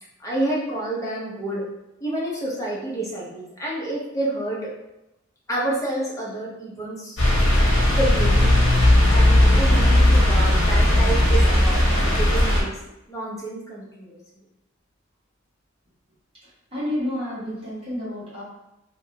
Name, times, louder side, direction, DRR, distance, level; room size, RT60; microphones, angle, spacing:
voice 1, 0.2-1.6 2.0-4.6 5.5-7.3 8.0-12.8 13.1-14.2, right 1 dB, 15° left, -6 dB, 0.8 m, -29 dB
sound 1, 7.2-12.6, left 1 dB, 75° left, 0.9 m, -17 dB
voice 2, 16.4-18.4, left 1 dB, 30° right, -10 dB, 1.3 m, -30 dB
3.0 x 2.5 x 2.8 m, 0.90 s
head